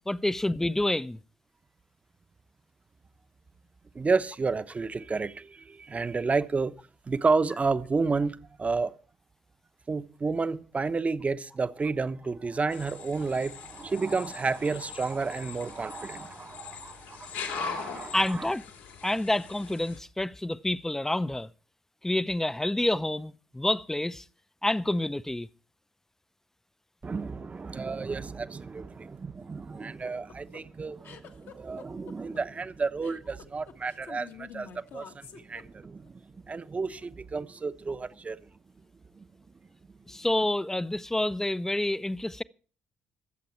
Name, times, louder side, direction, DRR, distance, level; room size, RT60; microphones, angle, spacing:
voice 1, 0.1-1.2 18.1-18.6 19.0-21.5 22.0-24.2 24.6-25.5 40.1-42.4, left 1 dB, 10° left, 0.6 m, -28 dB
voice 2, 3.9-6.7 7.1-9.0 9.9-18.5 27.0-38.5 39.1-39.3, right 4 dB, 30° right, 0.9 m, -31 dB
sound 1, 12.7-20.0, left 5 dB, 80° left, 2.9 m, -41 dB
sound 2, 29.8-36.1, left 7 dB, 60° left, 1.6 m, -48 dB
22.5 x 7.7 x 4.4 m
hypercardioid pair, 50°, 4 cm